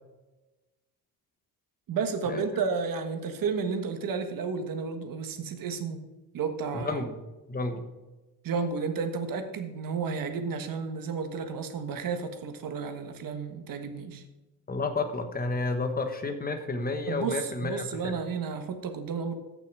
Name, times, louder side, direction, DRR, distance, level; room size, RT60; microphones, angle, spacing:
voice 1, 1.9-6.1 6.3-7.0 8.4-14.2 17.1-19.3, right 5 dB, 65° right, 8 dB, 1.4 m, -32 dB
voice 2, 6.8-7.2 7.5-7.8 14.7-18.1, left 3 dB, 25° left, 7 dB, 1.2 m, -31 dB
14.5 x 6.1 x 4.8 m, 1.1 s
cardioid pair, 160°, 37 cm